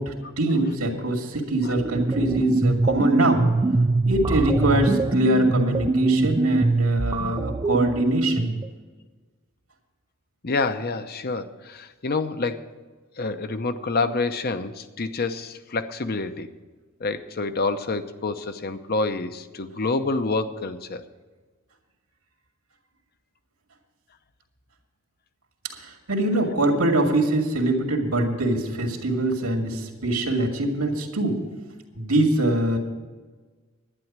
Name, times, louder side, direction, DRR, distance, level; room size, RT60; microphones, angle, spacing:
voice 1, 0.0-3.5 4.1-8.5 25.8-31.4 31.9-32.8, right 2 dB, 85° right, 3 dB, 2.3 m, -23 dB
sound 1, 1.5-8.7, right 2 dB, 20° right, 0.3 m, -23 dB
voice 2, 10.4-12.6 13.2-16.5 17.0-21.0, left 3 dB, 45° left, 10 dB, 0.8 m, -27 dB
11.0 x 9.8 x 7.4 m, 1.4 s
head